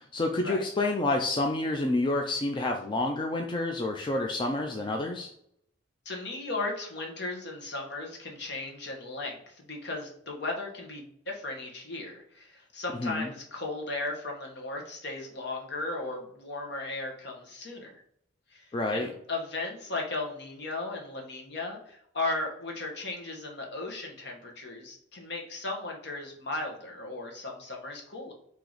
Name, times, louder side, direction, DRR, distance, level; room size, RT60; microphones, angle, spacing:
voice 1, 0.0-5.3 13.0-13.3 18.7-19.1, left 2 dB, 25° left, 2 dB, 0.4 m, -29 dB
voice 2, 6.0-18.0 18.5-28.3, left 2 dB, 60° left, 0 dB, 1.2 m, -36 dB
4.6 x 2.9 x 3.9 m, 0.69 s
head